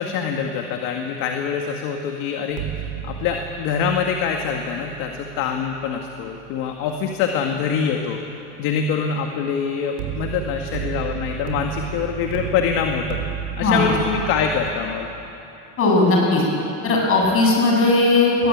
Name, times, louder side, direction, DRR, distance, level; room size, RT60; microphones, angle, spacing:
voice 1, 0.0-2.6 3.0-8.2 8.6-13.2 13.6-15.1, left 6 dB, 50° left, 3 dB, 2.1 m, -24 dB
sound 1, 2.5-7.6 10.0-14.7, right 9 dB, 75° right, 4.1 m, -33 dB
voice 2, 15.8-16.4 16.8-18.5, left 2 dB, 30° left, -1 dB, 7.7 m, -17 dB
28.5 x 22.0 x 8.8 m, 2.9 s
supercardioid pair, 160°, 44 cm